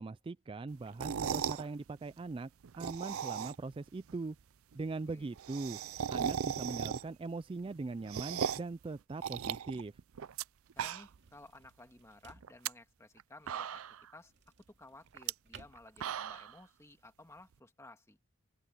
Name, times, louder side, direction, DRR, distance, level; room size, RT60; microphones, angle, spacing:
voice 1, 0.0-2.5 2.8-4.4 4.7-5.8 6.1-9.9, right 3 dB, 25° right, 0.3 m, -41 dB
sound 1, 0.9-1.7 2.6-3.8 4.1-4.2 4.4-4.5 4.7-4.8 5.1-7.3 7.6-8.7 9.2-10.4 10.7-11.3 11.6-11.7 12.4-12.7 13.2-13.3 13.5-14.1 15.1-15.3 15.8-16.5, right 8 dB, 85° right, 0.5 m, -37 dB
sound 2, 9.1-16.6, right 5 dB, 55° right, 2.4 m, -63 dB
voice 2, 10.8-13.8 14.1-14.3 14.7-18.2, left 2 dB, 15° left, 1.9 m, -56 dB
open air
head